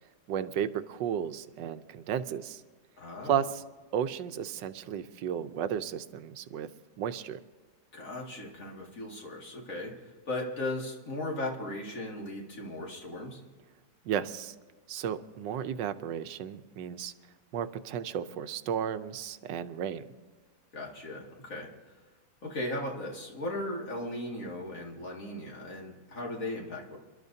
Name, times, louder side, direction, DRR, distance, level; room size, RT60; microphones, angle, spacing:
voice 1, 0.3-2.6 3.2-3.6 3.9-6.7 7.0-7.4 14.0-14.5 14.9-17.1 17.5-20.1, right 9 dB, 85° right, 11 dB, 1.4 m, -33 dB
voice 2, 3.0-3.4 7.9-9.9 10.3-13.4 20.7-21.7 22.4-27.0, left 1 dB, 50° left, -2 dB, 2.5 m, -37 dB
28.0 x 12.0 x 2.7 m, 1.3 s
omnidirectional pair, 1.9 m